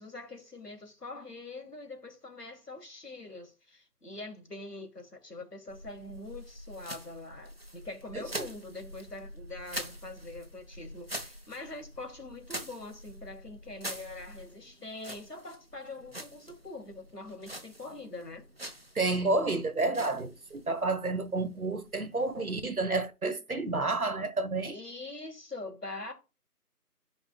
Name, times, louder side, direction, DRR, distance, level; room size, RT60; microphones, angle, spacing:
voice 1, 0.0-18.5 24.7-26.1, left 2 dB, 80° left, 2.9 m, -44 dB
sound 1, 5.7-23.0, equal, 40° right, 1.2 m, -45 dB
voice 2, 8.1-8.5 18.9-24.7, right 3 dB, 65° right, 1.5 m, -30 dB
11.5 x 5.3 x 2.4 m
figure-of-eight pair, 175°, 47 cm